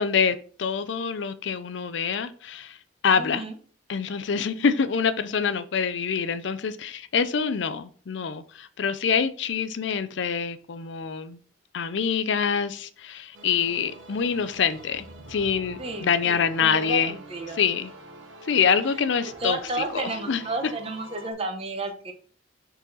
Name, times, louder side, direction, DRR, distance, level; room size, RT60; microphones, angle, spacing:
voice 1, 0.0-2.8 3.0-3.4 3.9-11.4 11.7-17.1 17.6-17.9 18.4-19.6 19.9-20.4, left 6 dB, 70° left, 0.5 m, -25 dB
voice 2, 3.2-3.6 15.8-17.6 19.4-22.1, right 2 dB, 30° right, 0.9 m, -32 dB
sound 1, 13.3-21.3, right 1 dB, 80° right, 1.2 m, -45 dB
6.1 x 4.1 x 4.0 m
head